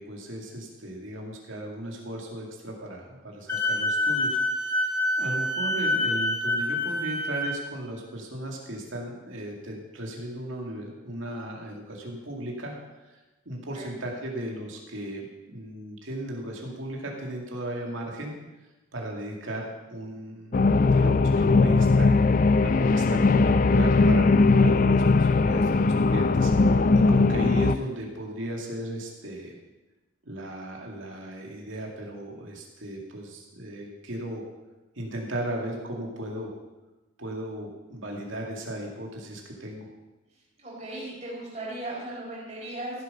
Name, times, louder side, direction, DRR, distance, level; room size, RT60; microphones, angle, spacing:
voice 1, 0.0-12.7 13.1-13.2 13.5-18.3 18.9-22.1 22.6-29.6 30.2-34.4 35.0-36.5 37.2-39.9, right 1 dB, 75° right, 0 dB, 2.4 m, -36 dB
Wind instrument woodwind instrument, 3.5-7.5, left 1 dB, 10° left, 1.6 m, -26 dB
sound 1, 20.5-27.8, left 3 dB, 40° left, 0.3 m, -20 dB
voice 2, 40.6-43.0, right 1 dB, 35° right, -5 dB, 4.8 m, -37 dB
15.0 x 7.6 x 5.5 m, 1.1 s
head